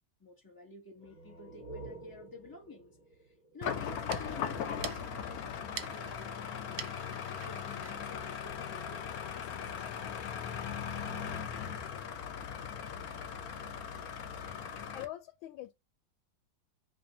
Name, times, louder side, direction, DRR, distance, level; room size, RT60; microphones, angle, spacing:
voice 1, 0.2-7.0 7.4-10.1, left 3 dB, 25° left, 0.5 m, -52 dB
sound 1, 1.0-4.5, right 2 dB, 40° left, 1.5 m, -50 dB
sound 2, 3.6-15.0, left 7 dB, 70° left, 0.9 m, -39 dB
sound 3, 3.8-9.1, right 10 dB, 75° right, 1.3 m, -48 dB
voice 2, 14.9-15.7, left 14 dB, 85° left, 1.4 m, -43 dB
3.2 x 2.6 x 4.0 m
omnidirectional pair, 2.1 m